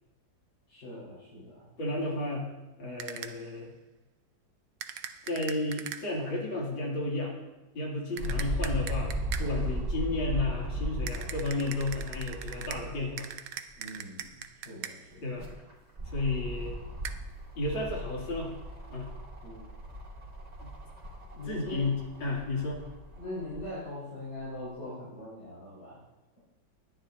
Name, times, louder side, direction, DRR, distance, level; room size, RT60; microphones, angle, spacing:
voice 1, 0.7-1.7 13.8-15.3 19.4-19.6 21.3-21.9 23.2-26.0, left 1 dB, 55° left, -10 dB, 4.9 m, -41 dB
voice 2, 1.8-2.5 2.8-3.7 5.2-7.3 7.7-13.3 15.2-15.5 16.1-16.7 17.6-18.5 18.9-19.1 20.6-20.7 21.5-22.8, left 2 dB, 85° left, -3 dB, 3.5 m, -32 dB
sound 1, 3.0-3.5 4.8-6.3 8.2-9.7 11.1-15.2 17.0-17.1, right 9 dB, 70° right, 1.3 m, -42 dB
sound 2, 8.2-13.2 13.7-13.8 15.1-23.7 24.4-24.5, equal, 35° right, 2.4 m, -37 dB
20.5 x 10.5 x 2.7 m, 1.1 s
omnidirectional pair, 2.1 m